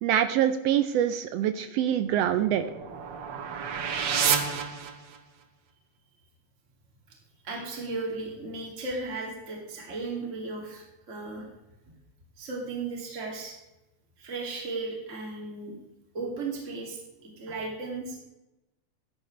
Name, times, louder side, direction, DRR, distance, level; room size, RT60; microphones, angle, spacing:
voice 1, 0.0-2.6, right 10 dB, 80° right, 10 dB, 1.5 m, -25 dB
sound 1, 2.0-5.4, right 7 dB, 65° right, 1.2 m, -30 dB
voice 2, 7.4-11.5 12.4-13.6 14.2-15.7 16.1-18.3, right 3 dB, 25° right, -1 dB, 2.6 m, -35 dB
14.0 x 10.5 x 3.3 m, 0.96 s
omnidirectional pair, 3.3 m